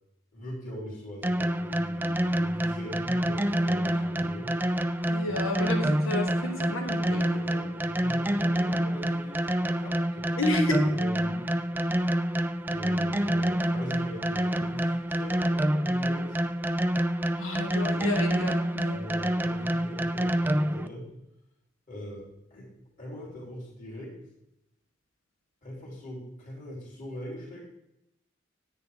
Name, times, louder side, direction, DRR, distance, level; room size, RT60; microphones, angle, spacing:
voice 1, 0.3-4.5 5.4-5.7 7.8-10.3 10.9-11.5 12.7-16.4 18.9-21.1 21.9-22.7 23.0-24.1 25.6-27.6, left 1 dB, 40° left, -4 dB, 3.3 m, -41 dB
sound 1, 1.2-20.9, right 1 dB, 10° right, 0.3 m, -27 dB
voice 2, 5.1-7.7 10.3-10.8 17.4-19.0, left 2 dB, 85° left, 4 dB, 1.7 m, -31 dB
10.0 x 9.1 x 3.7 m, 0.87 s
head